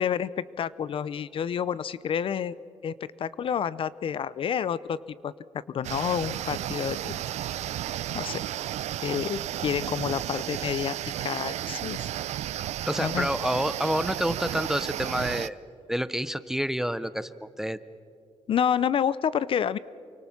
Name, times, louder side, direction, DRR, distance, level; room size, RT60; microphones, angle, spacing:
voice 1, 0.0-2.6 2.8-5.0 5.2-5.3 5.7-7.1 8.1-8.4 9.0-10.9 11.2-12.0 13.0-13.3 18.5-19.8, left 8 dB, 50° left, 18 dB, 0.5 m, -29 dB
sound 1, 5.8-15.5, right 12 dB, 75° right, 0.5 m, -33 dB
voice 2, 12.9-15.6 15.9-17.8, equal, 5° right, 14 dB, 0.6 m, -28 dB
29.0 x 24.0 x 6.0 m, 2.4 s
cardioid pair, 140°, 12 cm